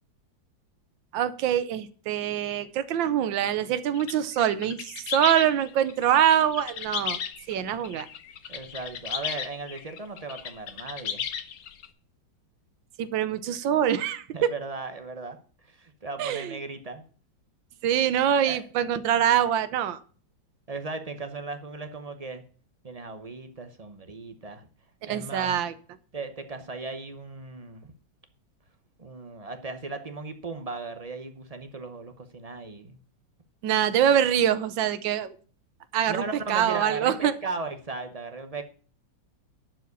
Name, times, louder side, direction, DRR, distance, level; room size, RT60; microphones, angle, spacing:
voice 1, 1.1-7.2 7.5-8.1 13.0-14.5 16.2-16.6 17.8-20.0 25.0-25.7 33.6-35.3 35.9-37.3, right 10 dB, 80° right, 14 dB, 1.5 m, -24 dB
sound 1, 3.9-11.9, left 8 dB, 60° left, 1.1 m, -35 dB
voice 2, 8.5-11.3 14.3-17.0 18.5-18.6 20.7-22.4 22.8-24.7 25.1-25.6 26.1-27.9 29.0-33.0 36.1-38.6, right 3 dB, 35° right, 7 dB, 0.6 m, -37 dB
11.5 x 5.0 x 8.2 m, 0.41 s
omnidirectional pair, 2.1 m